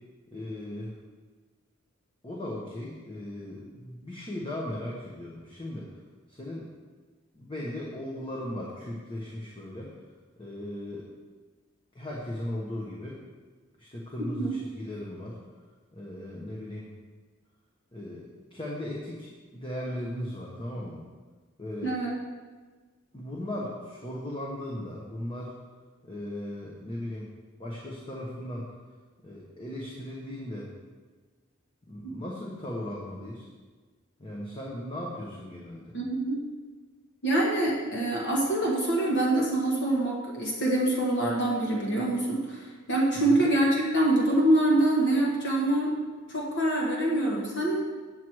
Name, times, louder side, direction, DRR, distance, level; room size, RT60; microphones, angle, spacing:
voice 1, 0.3-1.0 2.2-5.9 6.3-6.7 7.3-9.9 10.4-11.0 11.9-13.2 13.8-15.4 15.9-16.9 17.9-21.0 21.6-21.9 23.1-25.5 26.0-27.3 27.6-28.7 29.2-30.7 31.9-33.5 34.2-36.0 43.2-43.4, left 1 dB, 25° left, -4 dB, 1.1 m, -37 dB
voice 2, 21.8-22.1 32.0-32.1 35.9-36.4 37.2-45.9 46.3-47.8, right 1 dB, 55° left, -3 dB, 1.4 m, -25 dB
7.9 x 7.6 x 4.7 m, 1.4 s
head